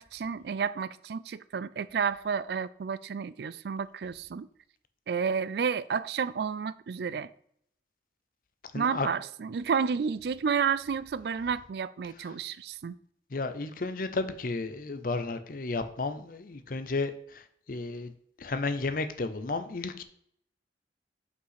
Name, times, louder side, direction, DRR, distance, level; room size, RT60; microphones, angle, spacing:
voice 1, 0.0-4.5 5.1-7.3 8.7-13.0, right 6 dB, 60° right, 0.3 m, -31 dB
voice 2, 8.7-9.1 13.3-17.4 17.7-18.1 18.4-20.0, left 3 dB, 50° left, 0.6 m, -32 dB
5.6 x 5.4 x 5.8 m
head